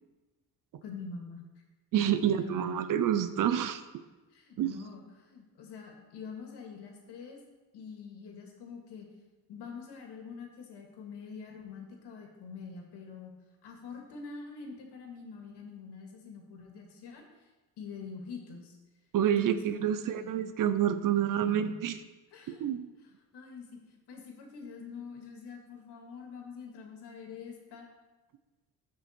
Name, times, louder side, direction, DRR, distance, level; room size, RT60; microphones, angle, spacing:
voice 1, 0.8-1.4 1.9-2.8 4.3-7.4 7.7-9.1 9.5-13.3 13.6-17.3 17.8-18.8 19.2-20.4 21.3-21.9 22.3-22.7 23.3-27.9, left 5 dB, 80° left, 2 dB, 2.2 m, -45 dB
voice 2, 1.9-3.8 4.6-4.7 19.1-22.0 22.6-22.9, right 10 dB, 55° right, 11 dB, 0.6 m, -28 dB
13.5 x 5.6 x 4.4 m, 1.2 s
cardioid pair, 150°, 40 cm